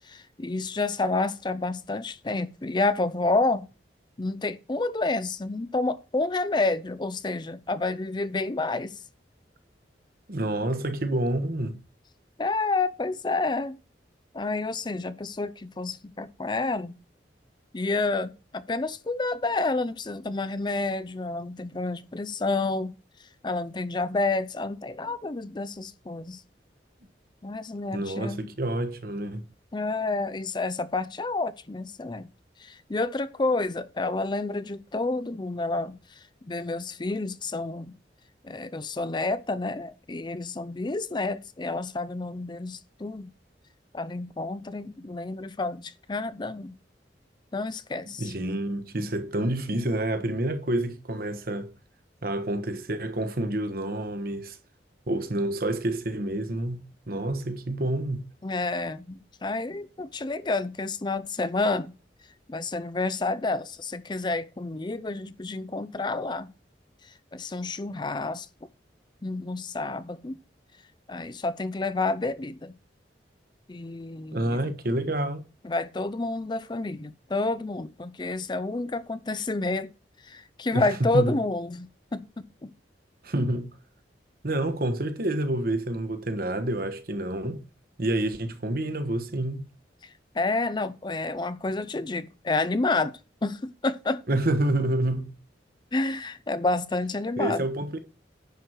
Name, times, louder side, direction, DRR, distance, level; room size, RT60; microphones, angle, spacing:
voice 1, 0.1-3.7 4.2-8.9 12.4-13.8 14.3-17.0 17.7-22.9 23.4-26.4 27.4-28.5 29.7-32.3 32.6-36.0 36.5-38.0 38.4-43.3 43.9-46.8 47.5-48.3 58.4-61.9 62.5-66.5 67.3-68.5 69.2-70.4 71.1-72.7 73.7-74.6 75.6-79.9 80.2-82.7 90.3-94.2 95.9-97.6, left 3 dB, 25° left, 0.5 m, -29 dB
voice 2, 10.3-11.8 27.9-29.4 48.1-51.7 52.2-54.6 55.1-58.2 74.3-75.4 80.7-80.9 81.1-81.4 83.2-83.7 84.4-87.6 88.0-89.6 94.3-95.3 97.4-98.0, right 1 dB, 55° right, 1.2 m, -28 dB
10.5 x 4.6 x 6.5 m
head